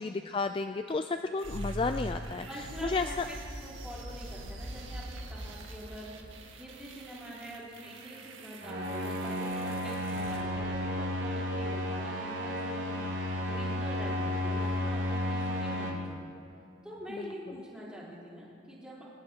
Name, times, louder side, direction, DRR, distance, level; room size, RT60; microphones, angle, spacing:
voice 1, 0.0-3.3 17.1-17.5, left 3 dB, 25° left, 7 dB, 0.3 m, -33 dB
sound 1, 1.4-11.4, right 1 dB, 90° right, 1.7 m, -43 dB
voice 2, 2.5-3.4 3.6-16.3 16.8-19.0, equal, 5° right, -7 dB, 3.8 m, -45 dB
sound 2, 8.6-15.9, equal, 65° right, 2.8 m, -33 dB
21.5 x 19.5 x 2.9 m, 2.5 s
head